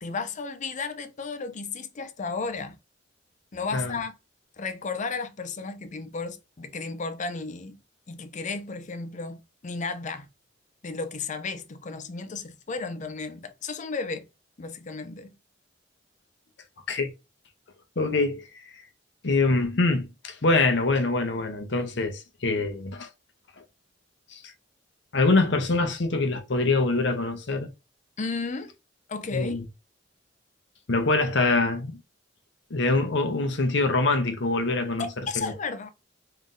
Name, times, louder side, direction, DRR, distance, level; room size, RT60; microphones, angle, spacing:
voice 1, 0.0-2.8 3.5-4.2 4.6-7.8 8.1-10.3 10.8-14.3 14.6-15.3 28.2-28.7 29.1-29.6 35.0-35.9, left 4 dB, 40° left, 0.6 m, -33 dB
voice 2, 18.0-18.5 19.2-23.1 24.3-24.4 25.1-27.7 29.3-29.6 30.9-32.0 32.7-35.1 35.4-35.5, left 3 dB, 70° left, 0.8 m, -24 dB
3.3 x 2.6 x 3.7 m
head